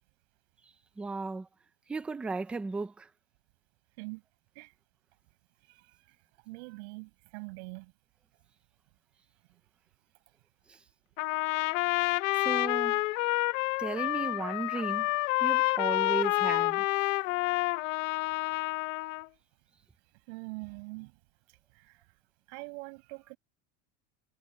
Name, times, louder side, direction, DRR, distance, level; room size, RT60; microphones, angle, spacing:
voice 1, 1.0-1.5 1.9-3.1 10.7-10.8 12.4-13.0 13.8-15.1 15.4-16.8, right 3 dB, 5° right, 0.3 m, -35 dB
voice 2, 5.7-6.2 6.5-7.9 20.3-21.2 21.7-22.1 22.5-23.4, right 30 dB, 60° right, 7.4 m, -44 dB
Trumpet, 11.2-19.2, left 20 dB, 80° left, 0.8 m, -29 dB
supercardioid pair, 170°, 38 cm